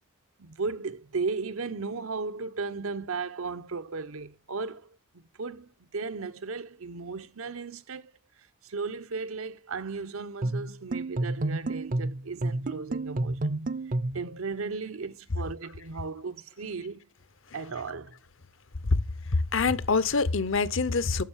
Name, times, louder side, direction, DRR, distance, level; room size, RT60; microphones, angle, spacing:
voice 1, 0.4-8.1 8.6-13.6 13.9-17.0 17.5-18.2, right 4 dB, 80° right, 0.9 m, -36 dB
sound 1, 10.4-14.3, right 2 dB, 40° right, 0.6 m, -30 dB
voice 2, 19.3-21.2, left 4 dB, 65° left, 0.8 m, -25 dB
9.4 x 7.2 x 7.3 m
head